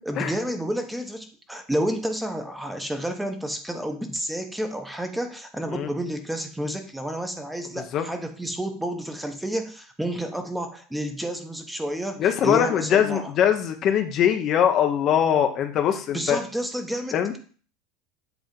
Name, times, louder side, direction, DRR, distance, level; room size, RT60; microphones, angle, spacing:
voice 1, 0.0-13.3 15.9-17.4, right 1 dB, 5° right, 5 dB, 0.9 m, -30 dB
voice 2, 12.2-16.4 17.1-17.4, left 9 dB, 40° left, 6 dB, 0.8 m, -22 dB
8.1 x 3.5 x 5.2 m, 0.41 s
supercardioid pair, 135°, 0 cm